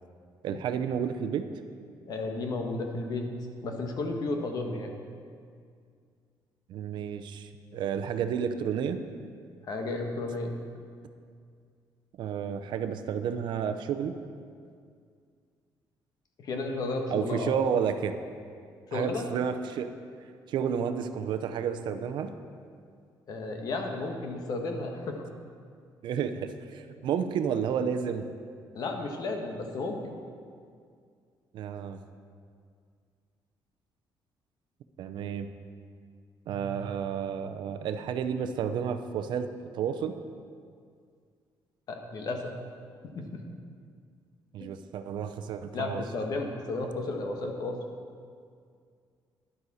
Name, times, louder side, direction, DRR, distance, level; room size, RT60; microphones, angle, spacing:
voice 1, 0.4-1.5 6.7-9.0 12.2-14.2 17.1-18.2 18.9-19.9 20.5-22.3 26.0-28.3 31.5-32.0 35.0-35.5 36.5-39.5 39.7-40.1 44.5-46.0, right 7 dB, 70° right, 9 dB, 0.7 m, -31 dB
voice 2, 2.1-3.3 3.6-5.0 9.7-10.5 16.4-17.5 18.9-19.2 23.3-25.2 28.7-30.1 41.9-42.5 43.0-43.4 44.6-44.7 45.7-47.8, left 3 dB, 50° left, 3 dB, 1.3 m, -33 dB
13.0 x 11.0 x 4.2 m, 2.2 s
cardioid pair, 165°, 8 cm